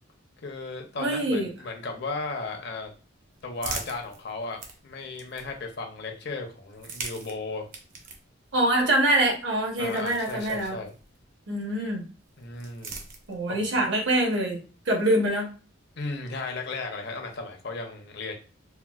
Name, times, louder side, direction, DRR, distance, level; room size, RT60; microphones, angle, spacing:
voice 1, 0.4-2.9 3.4-7.7 9.8-10.9 12.4-13.0 13.5-13.7 16.0-18.3, left 3 dB, 60° left, 3 dB, 0.7 m, -35 dB
voice 2, 1.0-1.5 8.5-10.7 11.5-12.0 13.3-14.6 14.9-15.5, right 1 dB, 65° right, 1 dB, 1.0 m, -24 dB
sound 1, 2.9-5.8 6.6-11.2 12.2-13.7, right 4 dB, 45° right, 0.7 m, -42 dB
4.4 x 2.2 x 2.3 m, 0.36 s
head